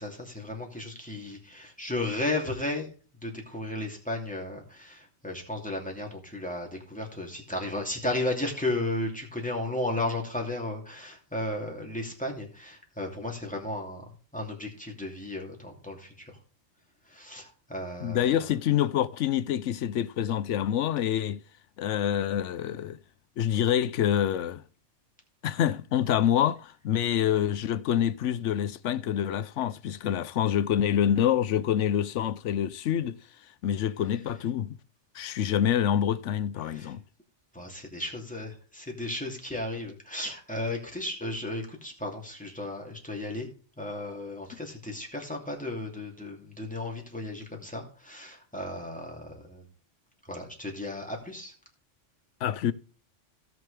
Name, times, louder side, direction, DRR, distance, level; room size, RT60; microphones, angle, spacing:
voice 1, 0.0-2.9 3.2-14.0 14.3-16.3 17.1-18.3 36.6-36.9 37.5-43.5 43.8-49.6 50.3-51.5, left 1 dB, 5° left, 2.7 m, -34 dB
voice 2, 18.0-21.4 21.8-23.0 23.4-24.6 25.4-33.2 33.6-34.8 35.1-37.0 52.4-52.7, left 10 dB, 75° left, 1.0 m, -26 dB
17.0 x 6.2 x 3.3 m
omnidirectional pair, 1.2 m